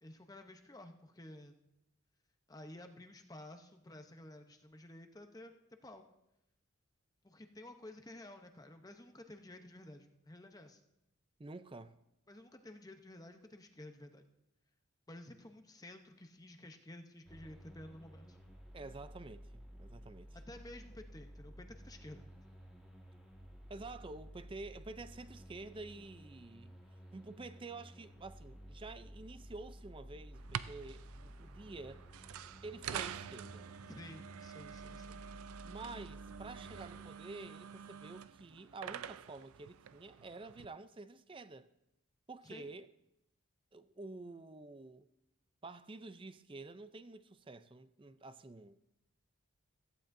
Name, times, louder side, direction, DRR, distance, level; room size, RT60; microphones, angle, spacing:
voice 1, 0.0-1.6 2.5-5.5 5.8-6.0 7.2-10.8 12.3-14.2 15.1-18.4 20.3-22.3 33.9-35.2 42.4-42.7, left 1 dB, 15° left, 0.8 m, -52 dB
voice 2, 11.4-12.0 18.7-20.3 23.7-26.7 27.1-32.0 32.6-33.7 35.6-41.7 42.3-42.9 43.7-45.1 45.6-48.8, right 3 dB, 25° right, 0.4 m, -49 dB
sound 1, 17.2-37.1, equal, 5° right, 1.6 m, -54 dB
sound 2, 30.3-40.6, right 8 dB, 80° right, 0.4 m, -47 dB
16.5 x 14.5 x 2.6 m
head